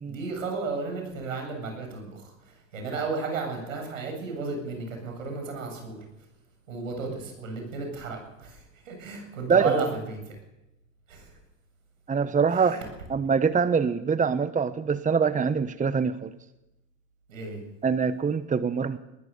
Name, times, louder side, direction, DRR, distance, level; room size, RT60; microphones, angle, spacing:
voice 1, 0.1-6.0 6.7-10.4 11.1-11.3 12.5-12.8 17.3-17.6, right 4 dB, 80° right, 4 dB, 7.8 m, -33 dB
voice 2, 12.1-12.8 13.1-16.3 17.8-19.0, right 6 dB, 20° right, 13 dB, 1.2 m, -24 dB
21.0 x 20.0 x 7.0 m, 0.92 s
hypercardioid pair, 70°, 39 cm